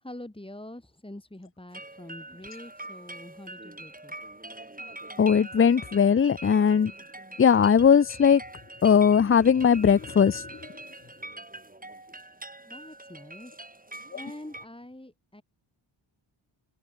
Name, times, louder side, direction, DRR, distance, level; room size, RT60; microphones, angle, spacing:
voice 1, 0.0-4.1 12.7-13.6 14.1-15.4, left 1 dB, 10° left, 6.3 m, -45 dB
sound 1, 1.7-14.7, right 2 dB, 15° right, 7.5 m, -44 dB
voice 2, 5.2-6.9 7.4-8.4 8.8-10.4, left 7 dB, 25° left, 0.7 m, -19 dB
open air
cardioid pair, 55°, 50 cm